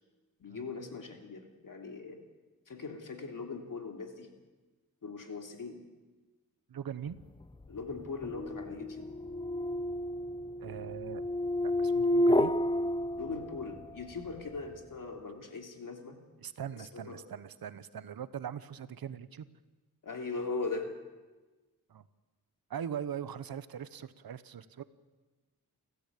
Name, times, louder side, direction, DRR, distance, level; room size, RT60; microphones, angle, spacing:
voice 1, 0.4-2.2 2.7-4.3 5.0-5.8 7.7-9.1 13.2-16.2 16.9-17.2 20.0-20.9, left 4 dB, 65° left, 4 dB, 3.0 m, -40 dB
voice 2, 6.7-7.2 10.6-11.2 11.6-12.5 16.4-19.5 21.9-22.0 22.7-24.8, right 8 dB, 80° right, 14 dB, 1.0 m, -41 dB
sound 1, 7.4-13.9, left 1 dB, 15° left, 0.7 m, -31 dB
28.5 x 14.0 x 8.4 m, 1.3 s
wide cardioid pair, 120°, 35 cm